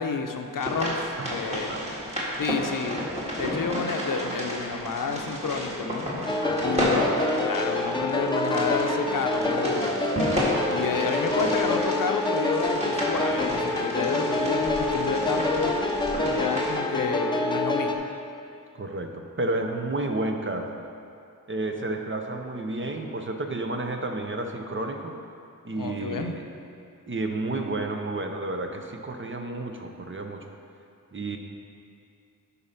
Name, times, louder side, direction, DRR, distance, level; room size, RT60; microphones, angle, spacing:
voice 1, 0.0-1.7 2.4-3.0 3.4-6.1 6.6-7.1 7.4-10.0 10.7-15.7 16.2-18.0 25.8-26.3, left 5 dB, 70° left, 5 dB, 0.7 m, -30 dB
sound 1, 0.6-16.8, equal, 20° right, 1.9 m, -32 dB
voice 2, 1.2-2.0 3.6-3.7 6.5-7.0 10.8-10.9 18.7-20.7 21.5-25.2 25.6-26.5 27.1-30.4 31.1-31.4, right 2 dB, 35° right, 4 dB, 0.7 m, -31 dB
sound 2, 6.3-17.9, left 2 dB, 15° left, 0.6 m, -27 dB
10.0 x 4.1 x 5.7 m, 2.5 s
wide cardioid pair, 100°, 34 cm